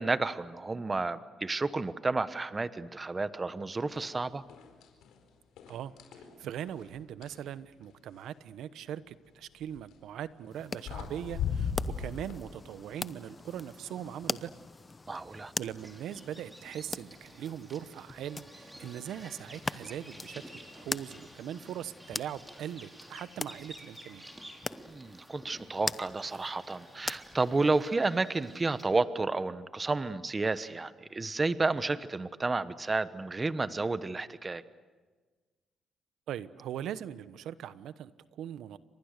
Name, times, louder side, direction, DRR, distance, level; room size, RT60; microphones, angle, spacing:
voice 1, 0.0-4.4 15.1-15.5 24.9-34.6, right 3 dB, 25° right, 13 dB, 1.1 m, -31 dB
sound 1, 3.9-4.2 4.5-5.1 5.6-7.4 9.6-9.9 10.6-10.7 10.9-12.3, left 7 dB, 85° left, 4.8 m, -36 dB
voice 2, 5.7-11.7 12.0-14.5 15.3-24.3 36.3-38.8, right 10 dB, 80° right, 14 dB, 1.1 m, -41 dB
sound 2, 10.5-27.9, left 3 dB, 25° left, 0.8 m, -42 dB
Bird vocalization bird call bird song, 15.8-28.9, right 1 dB, 10° right, 5.1 m, -52 dB
30.0 x 25.5 x 6.7 m, 1.4 s
cardioid pair, 90°, 0 cm